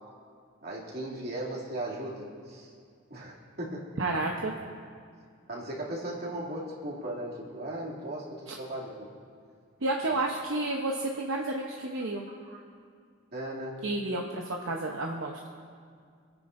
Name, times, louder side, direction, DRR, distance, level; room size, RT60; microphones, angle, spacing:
voice 1, 0.6-2.7 3.1-3.9 5.5-9.1 10.1-10.2 12.3-12.6 13.3-13.8, right 1 dB, 50° right, -4 dB, 2.7 m, -37 dB
voice 2, 4.0-4.5 9.8-12.3 13.8-15.5, right 2 dB, 70° right, 0 dB, 0.9 m, -31 dB
26.5 x 10.0 x 2.6 m, 2.2 s
head